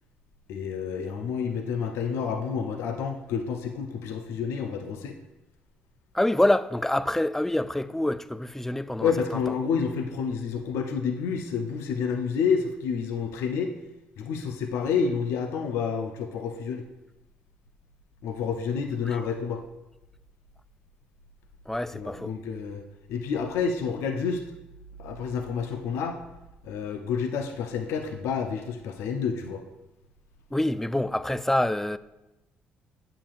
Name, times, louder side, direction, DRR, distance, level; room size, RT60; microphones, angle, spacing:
voice 1, 0.5-5.2 9.0-13.7 14.2-16.8 18.2-19.6 21.9-22.8 23.1-24.4 25.0-26.2 26.6-29.6, left 6 dB, 65° left, 0.6 m, -29 dB
voice 2, 6.1-9.1 19.1-19.2 21.7-22.3 30.5-32.0, left 1 dB, 5° left, 0.4 m, -26 dB
8.4 x 7.6 x 2.5 m
hypercardioid pair, 45°, 5 cm